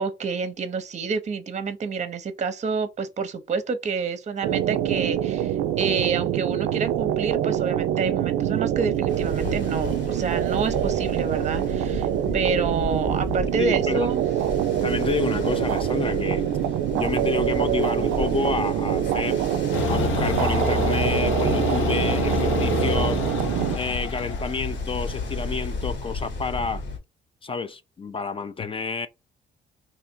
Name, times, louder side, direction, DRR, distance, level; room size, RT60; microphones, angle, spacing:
voice 1, 0.0-12.1 12.3-14.2, right 5 dB, 35° right, 0.7 m, -28 dB
sound 1, 4.4-23.8, right 11 dB, 90° right, 0.4 m, -25 dB
Ocean, 9.1-27.0, left 3 dB, 65° left, 1.4 m, -34 dB
voice 2, 13.6-14.0 14.8-16.4 16.9-19.4 19.9-23.2 23.7-26.8 27.4-29.1, left 4 dB, 25° left, 0.4 m, -29 dB
sound 2, 19.7-25.5, left 5 dB, 85° left, 0.9 m, -27 dB
2.8 x 2.5 x 4.3 m
cardioid pair, 90°, 20 cm